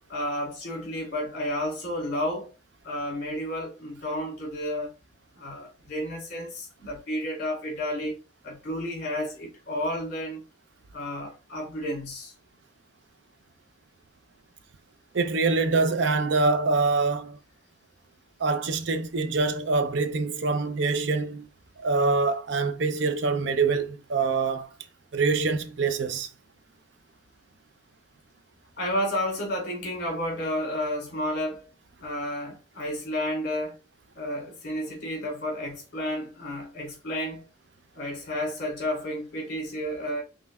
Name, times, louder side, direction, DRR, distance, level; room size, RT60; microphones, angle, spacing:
voice 1, 0.1-2.5 2.8-4.9 5.3-8.2 8.4-10.4 10.9-12.3 28.8-31.7 32.0-33.8 34.1-37.4 37.9-40.2, left 1 dB, 55° left, 2.5 m, -31 dB
voice 2, 15.1-17.4 18.4-21.5 21.8-24.7 25.1-26.3, right 4 dB, 60° right, 0.5 m, -25 dB
5.4 x 3.3 x 2.3 m
head